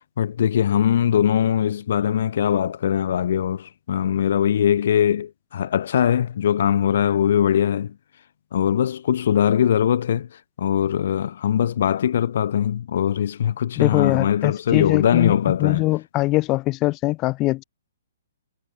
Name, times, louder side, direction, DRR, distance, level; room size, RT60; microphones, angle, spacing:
voice 1, 0.2-7.9 8.5-10.3 10.6-15.9, left 9 dB, 55° left, 1.0 m, -21 dB
voice 2, 13.8-17.6, left 19 dB, 25° left, 0.5 m, -22 dB
figure-of-eight pair, 125°, 0 cm